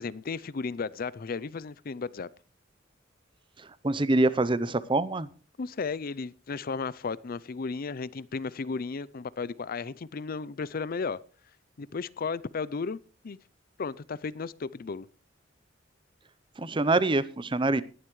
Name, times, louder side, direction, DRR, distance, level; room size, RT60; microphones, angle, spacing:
voice 1, 0.0-2.3 5.6-11.2 11.8-13.0 13.2-13.4 13.8-15.1, left 4 dB, 50° left, 0.5 m, -34 dB
voice 2, 3.6-5.3 16.6-17.8, right 2 dB, 25° right, 0.7 m, -25 dB
19.0 x 11.0 x 3.1 m
head